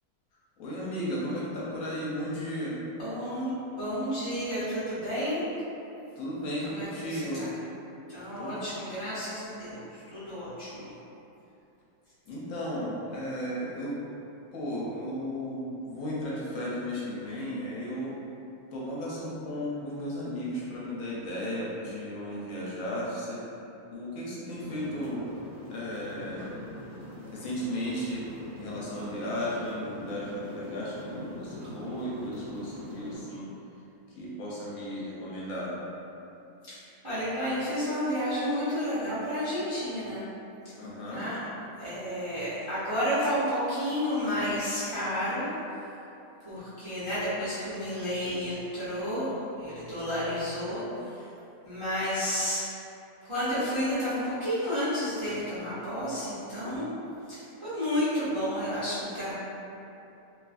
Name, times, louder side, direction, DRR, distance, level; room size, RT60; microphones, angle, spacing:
voice 1, 0.6-2.8 6.2-7.4 8.4-8.6 12.3-14.0 14.5-18.2 18.7-23.4 23.9-25.2 25.7-26.5 27.3-28.2 28.6-33.5 34.1-35.7 40.8-41.3, equal, 70° left, -6 dB, 0.9 m, -35 dB
voice 2, 3.0-5.4 6.6-7.5 8.1-10.9 36.6-36.8 37.0-40.2 41.1-41.4 41.8-45.5 46.4-51.3 51.6-52.7 53.2-56.9 57.3-59.3, equal, 35° right, -14 dB, 0.5 m, -31 dB
sound 1, 24.6-33.2, equal, 85° right, 1.2 m, -43 dB
2.7 x 2.3 x 2.4 m, 2.8 s
omnidirectional pair, 1.6 m